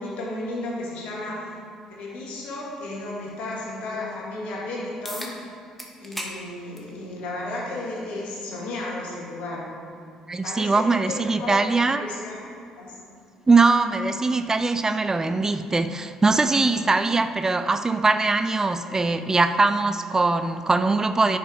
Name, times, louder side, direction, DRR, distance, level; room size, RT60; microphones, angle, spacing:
voice 1, 0.0-1.5 1.9-5.3 6.0-9.7 10.4-11.7 11.9-13.0, left 2 dB, 65° left, -3 dB, 2.2 m, -33 dB
sound 1, 5.0-5.3 5.8-6.4 6.8-6.9 8.0-8.1 13.0-13.1, equal, 5° left, 1.6 m, -35 dB
voice 2, 10.3-12.1 13.5-21.4, right 3 dB, 25° right, 10 dB, 0.4 m, -21 dB
9.8 x 5.9 x 4.7 m, 2.5 s
hypercardioid pair, 55°, 2 cm